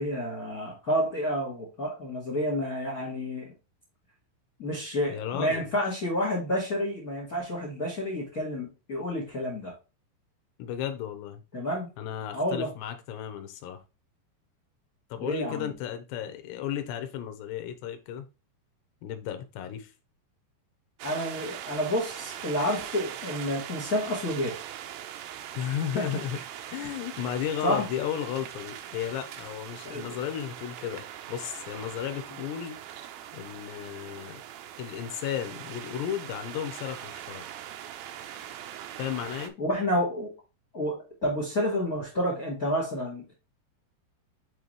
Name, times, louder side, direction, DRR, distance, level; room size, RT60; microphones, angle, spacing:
voice 1, 0.0-3.5 4.6-9.7 11.5-11.9 12.3-12.7 15.2-15.7 21.0-24.6 25.9-26.0 27.6-27.8 29.9-30.1 39.6-40.3 40.7-43.3, equal, 40° left, 1.2 m, -29 dB
voice 2, 5.1-5.6 10.6-11.4 12.0-13.8 15.1-18.3 19.0-19.9 25.5-26.4 26.7-32.8 33.3-34.4 34.8-37.5 39.0-39.6, left 10 dB, 80° left, 3.0 m, -34 dB
sound 1, 21.0-39.5, right 11 dB, 90° right, 2.0 m, -41 dB
7.4 x 4.0 x 3.2 m
omnidirectional pair, 5.1 m